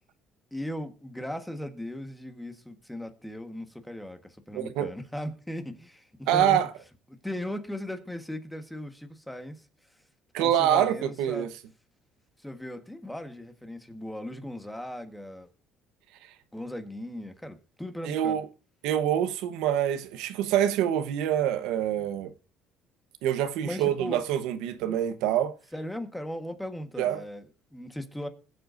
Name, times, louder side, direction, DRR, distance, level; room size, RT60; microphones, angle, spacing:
voice 1, 0.5-6.6 7.2-9.6 10.4-11.5 12.4-15.5 16.5-18.4 23.6-24.2 24.8-25.0 25.7-28.3, left 1 dB, 5° left, 1.3 m, -38 dB
voice 2, 4.5-4.9 6.3-6.7 10.3-11.5 18.0-18.4 18.8-22.3 23.2-25.5 27.0-27.2, right 10 dB, 85° right, 1.0 m, -26 dB
21.0 x 7.8 x 2.6 m
cardioid pair, 135°, 0 cm